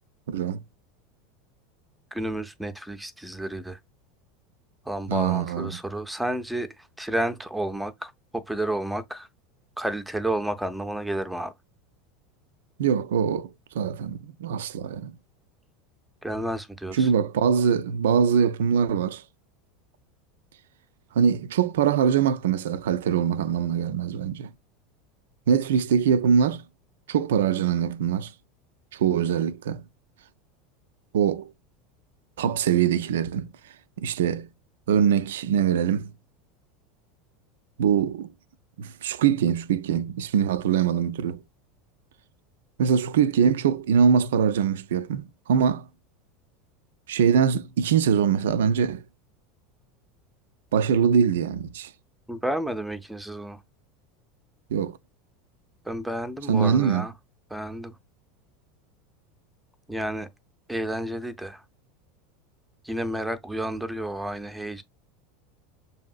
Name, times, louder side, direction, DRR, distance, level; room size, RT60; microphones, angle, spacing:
voice 1, 0.3-0.6 5.1-5.7 12.8-13.5 13.7-15.1 16.9-19.2 21.2-24.5 25.5-26.6 27.1-28.3 28.9-29.8 31.1-31.5 32.4-33.5 34.0-34.5 34.9-36.1 37.8-38.3 38.8-41.4 42.8-45.9 47.1-49.0 50.7-51.9 54.7-55.0 56.5-57.1, right 7 dB, 65° right, 0.3 m, -23 dB
voice 2, 2.1-3.8 4.9-9.3 9.8-11.5 16.2-17.1 52.3-53.6 55.8-57.1 57.5-58.0 59.9-60.3 60.7-61.6 62.8-64.8, right 1 dB, 5° right, 0.6 m, -31 dB
7.0 x 2.7 x 2.3 m
figure-of-eight pair, 80°, 0 cm